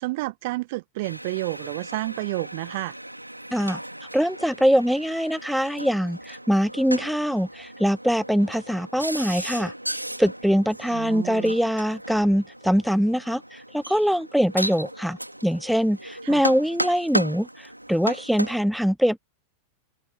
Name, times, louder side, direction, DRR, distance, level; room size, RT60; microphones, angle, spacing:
voice 1, 0.0-3.0 10.9-11.5 16.2-16.4, right 21 dB, 50° right, 1.2 m, -30 dB
sound 1, 1.0-18.6, right 1 dB, 85° right, 3.2 m, -35 dB
voice 2, 4.1-19.2, equal, ahead, 0.5 m, -23 dB
figure-of-eight pair, 90°, 0 cm